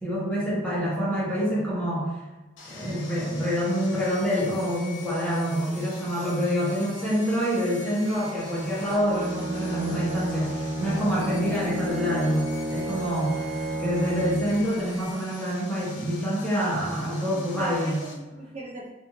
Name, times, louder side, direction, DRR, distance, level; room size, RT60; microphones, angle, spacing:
voice 1, 0.0-2.1 2.6-13.4 13.8-18.0, equal, 5° left, -7 dB, 0.8 m, -26 dB
Sawing, 2.6-18.1, left 3 dB, 90° left, 0.6 m, -45 dB
Bowed string instrument, 8.7-14.7, right 1 dB, 55° right, 0.7 m, -32 dB
voice 2, 17.0-18.9, right 1 dB, 35° right, -5 dB, 0.3 m, -41 dB
2.5 x 2.5 x 2.9 m, 1.1 s
head